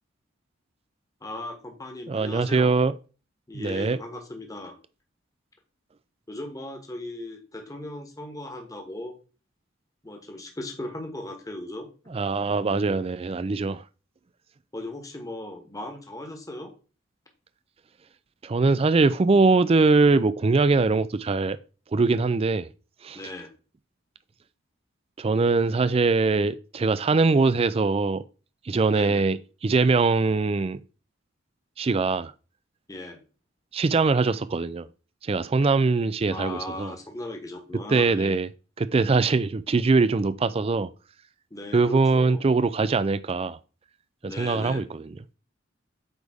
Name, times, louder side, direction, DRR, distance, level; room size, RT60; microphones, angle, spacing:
voice 1, 1.2-2.7 3.5-4.7 6.3-9.1 10.0-11.9 14.7-16.7 23.1-23.5 28.9-29.2 32.9-33.2 36.3-38.4 41.5-42.4 44.2-44.8, left 1 dB, 15° left, 1.2 m, -37 dB
voice 2, 2.1-3.0 3.5-4.0 12.1-13.8 18.4-21.6 21.9-22.7 23.0-23.2 25.2-28.2 28.6-30.8 31.8-32.3 33.7-34.9 35.2-36.9 37.9-38.5 38.8-40.9 41.7-43.6 44.2-45.2, right 3 dB, 30° right, 0.4 m, -22 dB
8.1 x 3.5 x 4.8 m
head